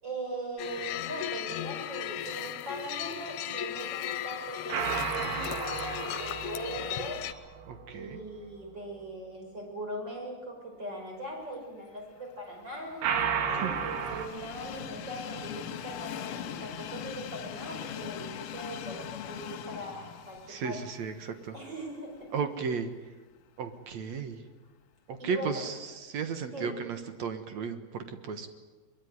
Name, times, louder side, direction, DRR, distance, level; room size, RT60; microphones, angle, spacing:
voice 1, 0.0-7.2 7.9-13.0 13.5-20.4 20.6-20.8 21.5-22.3 25.2-25.6 26.5-26.7, right 1 dB, 25° right, 1 dB, 6.5 m, -40 dB
sound 1, 0.6-7.3, left 12 dB, 90° left, 3.0 m, -36 dB
sound 2, 4.7-8.0 13.0-14.3, right 7 dB, 80° right, 3.9 m, -33 dB
voice 2, 7.7-8.2 13.6-13.7 20.5-21.6 22.3-22.9 23.6-24.5 25.1-28.5, right 6 dB, 55° right, 8 dB, 2.2 m, -34 dB
Train, 12.2-22.3 22.7-22.8 23.9-24.0, left 10 dB, 70° left, 2.6 m, -41 dB
22.5 x 22.0 x 9.5 m, 1.2 s
omnidirectional pair, 4.4 m